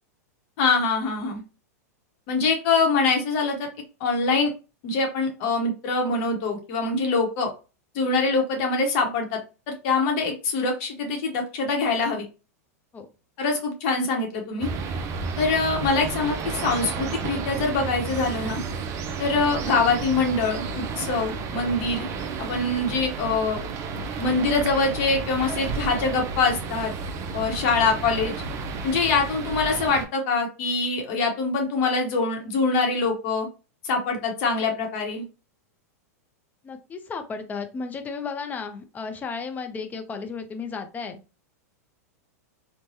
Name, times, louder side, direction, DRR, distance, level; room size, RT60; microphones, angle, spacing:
voice 1, 0.6-1.4 2.3-3.7 4.0-4.5 4.8-7.5 7.9-9.4 9.7-12.3 13.4-14.7 15.4-18.6 19.2-22.1 22.4-23.6 24.2-26.9 27.3-28.3 28.8-33.5 33.8-35.3, left 4 dB, 55° left, 2 dB, 0.9 m, -24 dB
sound 1, 14.6-30.1, right 4 dB, 35° right, 0.5 m, -32 dB
voice 2, 36.6-41.2, left 5 dB, 20° left, 6 dB, 0.5 m, -34 dB
3.1 x 2.1 x 2.6 m, 0.31 s
hypercardioid pair, 115°, 9 cm